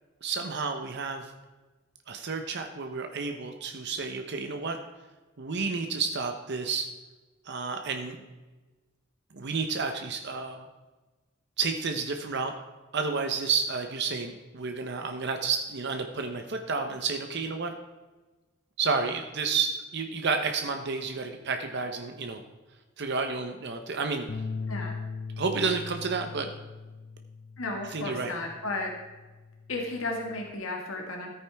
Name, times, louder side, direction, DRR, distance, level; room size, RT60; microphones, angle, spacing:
voice 1, 0.2-1.3 2.1-4.8 5.4-6.9 7.4-8.2 9.3-10.7 11.6-12.5 12.9-17.7 18.8-22.4 23.0-24.3 25.4-26.5 27.9-28.3, right 4 dB, 60° right, 5 dB, 0.8 m, -31 dB
sound 1, 24.3-30.5, left 4 dB, 45° left, 0.4 m, -40 dB
voice 2, 27.6-28.9 29.7-31.3, left 2 dB, 90° left, 0 dB, 1.6 m, -33 dB
14.0 x 9.1 x 3.5 m, 1.2 s
head